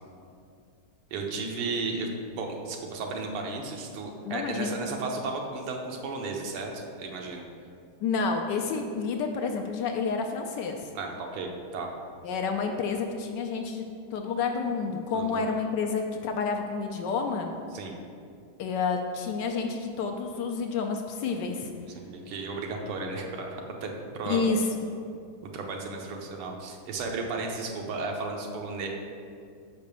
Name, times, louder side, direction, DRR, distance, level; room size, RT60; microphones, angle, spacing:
voice 1, 1.1-7.4 10.9-11.9 15.1-15.4 17.7-17.9 22.0-24.4 25.4-28.9, right 3 dB, 85° right, 1 dB, 1.8 m, -34 dB
voice 2, 4.2-4.8 8.0-10.9 12.2-13.9 14.1-17.6 18.6-21.7 24.3-24.7, left 5 dB, 75° left, 4 dB, 1.0 m, -29 dB
5.7 x 5.2 x 6.7 m, 2.4 s
omnidirectional pair, 2.4 m